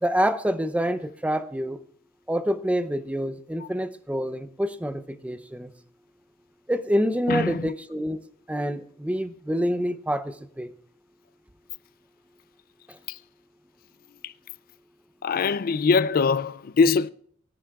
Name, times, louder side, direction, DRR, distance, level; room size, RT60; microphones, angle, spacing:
voice 1, 0.0-1.8 2.3-5.7 6.7-8.2 8.5-10.7, equal, 5° right, 0.6 m, -27 dB
voice 2, 7.3-7.7 14.2-14.3 15.2-17.1, left 4 dB, 45° left, 0.4 m, -22 dB
22.0 x 9.8 x 2.4 m
head